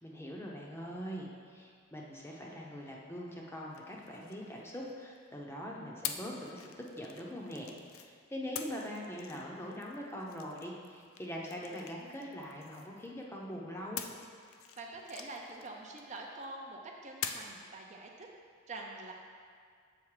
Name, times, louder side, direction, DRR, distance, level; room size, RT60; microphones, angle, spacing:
voice 1, 0.0-14.0, equal, 10° left, -2 dB, 0.6 m, -43 dB
sound 1, 3.7-5.2 6.0-8.1 8.5-13.2 14.0-16.4 17.2-17.6, left 8 dB, 80° left, 0.4 m, -45 dB
voice 2, 14.5-18.3 18.7-19.1, right 2 dB, 35° right, 0 dB, 0.5 m, -45 dB
7.2 x 4.1 x 4.8 m, 2.1 s
head